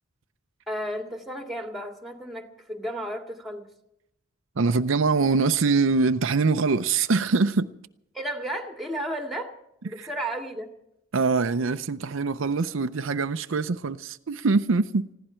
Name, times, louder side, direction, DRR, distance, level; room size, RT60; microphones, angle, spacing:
voice 1, 0.7-3.7 8.1-9.5 9.8-10.7, right 1 dB, ahead, 2.1 m, -33 dB
voice 2, 4.6-7.7 10.0-10.1 11.1-15.1, right 4 dB, 70° right, 0.6 m, -23 dB
20.5 x 16.0 x 4.4 m
head